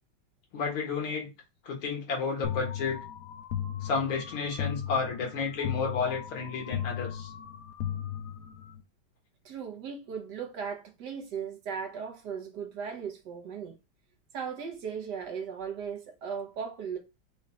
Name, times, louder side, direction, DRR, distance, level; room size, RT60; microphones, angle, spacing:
voice 1, 0.5-1.3 1.6-3.0 3.8-7.3, left 5 dB, 85° left, 2.3 m, -31 dB
sound 1, 2.4-8.8, left 9 dB, 70° left, 1.1 m, -36 dB
voice 2, 9.4-13.8 14.3-17.0, right 6 dB, 65° right, 1.3 m, -37 dB
5.0 x 2.4 x 4.2 m
omnidirectional pair, 2.2 m